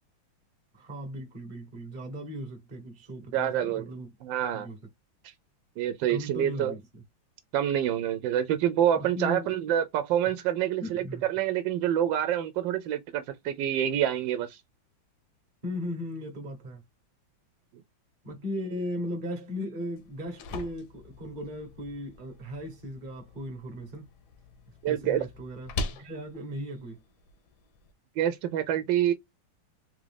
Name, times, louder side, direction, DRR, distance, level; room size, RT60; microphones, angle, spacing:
voice 1, 0.7-4.1 4.5-4.8 6.1-7.0 8.9-9.5 10.8-11.3 15.6-16.8 18.2-24.1 24.9-27.0, equal, 35° right, 0.8 m, -37 dB
voice 2, 3.3-3.9 4.2-4.7 5.8-6.7 7.5-14.6 24.8-25.3 28.2-29.1, right 10 dB, 80° right, 1.3 m, -27 dB
sound 1, 20.0-27.9, left 3 dB, 70° left, 1.1 m, -42 dB
3.7 x 2.4 x 3.3 m
omnidirectional pair, 2.1 m